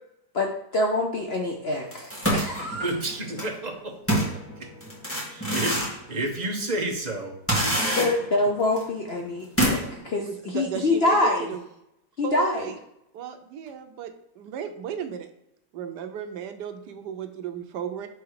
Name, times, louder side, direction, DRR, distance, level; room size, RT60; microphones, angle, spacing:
voice 1, 0.3-2.9 8.0-10.3 10.5-11.5 12.2-12.7, left 2 dB, 55° left, 1 dB, 0.7 m, -25 dB
sound 1, 1.9-3.5 4.1-6.0 6.4-6.5 7.5-8.4 8.8-8.9 9.6-10.0, right 1 dB, 10° left, 1.7 m, -26 dB
voice 2, 2.8-3.9 4.6-4.7 5.3-7.3 7.6-8.1, right 2 dB, 30° right, 2 dB, 0.8 m, -31 dB
voice 3, 10.0-11.6 12.2-12.8 13.1-15.3 15.7-18.1, right 7 dB, 80° right, 7 dB, 1.3 m, -35 dB
6.0 x 3.5 x 4.8 m, 0.82 s
omnidirectional pair, 1.8 m